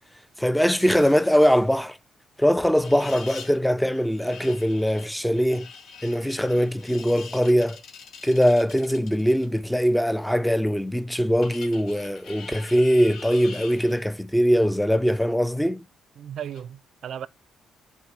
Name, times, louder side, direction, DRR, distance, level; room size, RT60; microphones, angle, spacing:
voice 1, 0.4-2.0 2.4-5.7 6.0-7.8 8.2-15.8, equal, 5° left, 0.6 m, -21 dB
sound 1, 0.8-1.8 2.7-3.6 3.9-9.5 11.4-14.1 16.4-16.6, left 6 dB, 70° left, 2.2 m, -44 dB
voice 2, 16.2-17.3, right 9 dB, 65° right, 0.5 m, -35 dB
9.3 x 4.7 x 7.3 m
cardioid pair, 90°, 0 cm